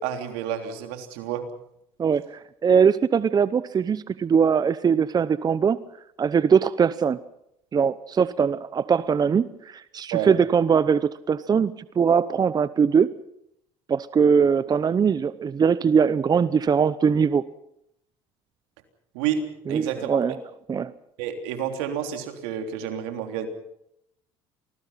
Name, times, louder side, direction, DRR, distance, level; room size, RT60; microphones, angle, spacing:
voice 1, 0.0-1.4 10.1-10.3 19.1-19.4 19.7-20.2 21.2-23.5, right 9 dB, 85° right, 5 dB, 3.4 m, -29 dB
voice 2, 2.0-5.8 6.2-7.2 7.7-13.2 13.9-17.4 19.7-20.3 20.7-20.9, right 6 dB, 30° right, 15 dB, 0.8 m, -21 dB
27.5 x 20.0 x 5.8 m, 0.78 s
supercardioid pair, 90°, 13 cm